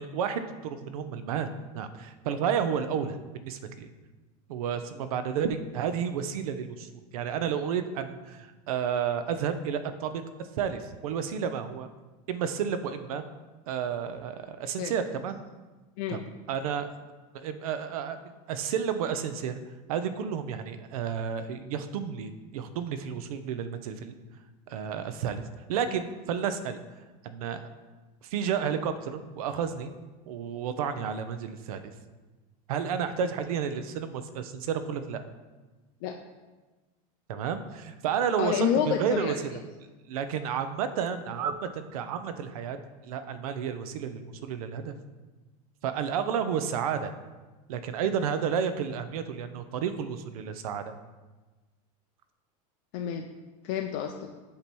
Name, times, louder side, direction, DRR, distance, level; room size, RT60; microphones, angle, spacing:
voice 1, 0.0-3.9 4.5-10.2 10.6-11.9 12.3-13.2 13.7-15.4 16.1-16.2 16.5-16.9 17.3-19.6 19.9-24.1 24.7-25.4 25.7-26.8 27.2-27.6 28.2-29.9 30.3-31.9 32.7-35.3 37.3-39.6 40.1-42.8 43.0-45.0 45.8-47.1 47.7-50.9, right 7 dB, 90° right, 10 dB, 0.7 m, -31 dB
voice 2, 38.4-39.3 52.9-53.3 53.6-54.3, left 9 dB, 40° left, 3 dB, 0.4 m, -29 dB
8.5 x 2.9 x 6.1 m, 1.2 s
supercardioid pair, 180°, 18 cm